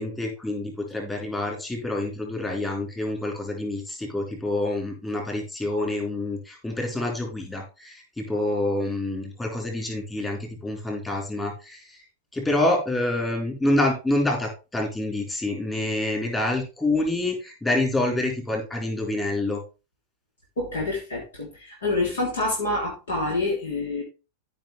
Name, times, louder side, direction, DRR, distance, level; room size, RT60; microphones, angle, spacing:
voice 1, 0.0-12.0 12.3-19.6, left 2 dB, 10° left, 1 dB, 4.3 m, -27 dB
voice 2, 20.6-24.0, left 2 dB, 65° left, -2 dB, 3.3 m, -27 dB
14.0 x 5.8 x 3.4 m, 0.29 s
figure-of-eight pair, 90°, 0 cm